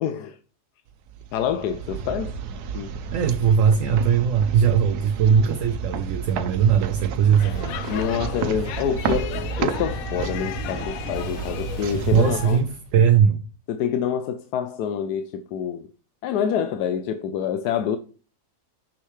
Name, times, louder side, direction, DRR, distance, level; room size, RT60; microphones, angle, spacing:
voice 1, 0.0-0.4 1.3-2.3 2.7-2.9 7.9-12.6 13.7-15.9 16.2-18.0, left 8 dB, 90° left, 1.2 m, -27 dB
sound 1, 1.1-13.1, right 6 dB, 85° right, 1.3 m, -31 dB
voice 2, 3.1-7.8 12.1-13.4, right 7 dB, 65° right, 1.0 m, -20 dB
Speech / Shout / Subway metro underground, 7.4-12.6, left 10 dB, 70° left, 1.0 m, -35 dB
6.7 x 6.5 x 3.1 m
omnidirectional pair, 1.6 m